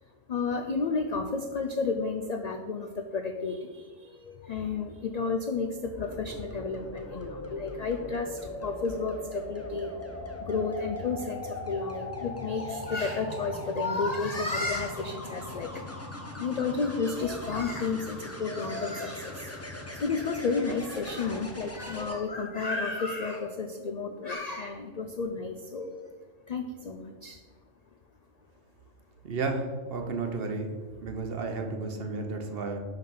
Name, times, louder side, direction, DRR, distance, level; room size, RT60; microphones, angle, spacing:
voice 1, 0.3-9.9 10.4-15.7 16.4-19.4 20.0-26.0 26.5-27.4, left 4 dB, 75° left, 5 dB, 0.3 m, -32 dB
sound 1, 6.0-22.1 24.1-24.3, left 1 dB, 15° left, 0.6 m, -40 dB
voice 2, 29.2-30.7 31.0-32.8, right 3 dB, 55° right, 4 dB, 0.9 m, -32 dB
5.6 x 5.3 x 5.5 m, 1.5 s
omnidirectional pair, 1.3 m